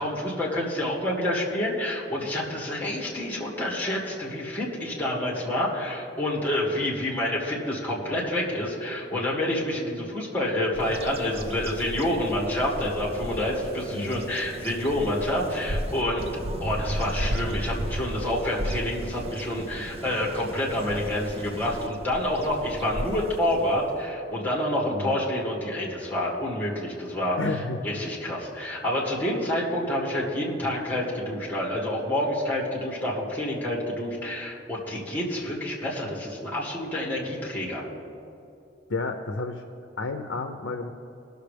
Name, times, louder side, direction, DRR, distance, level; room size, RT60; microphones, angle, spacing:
voice 1, 0.0-16.3 16.6-37.9, left 1 dB, 10° left, -4 dB, 2.1 m, -28 dB
Bird vocalization bird call bird song, 10.7-24.0, right 1 dB, 35° right, 0.5 m, -34 dB
voice 2, 24.9-25.2 27.4-27.8 38.9-39.6 40.0-40.9, left 3 dB, 75° left, 6 dB, 0.6 m, -31 dB
19.5 x 6.6 x 3.4 m, 2.7 s
head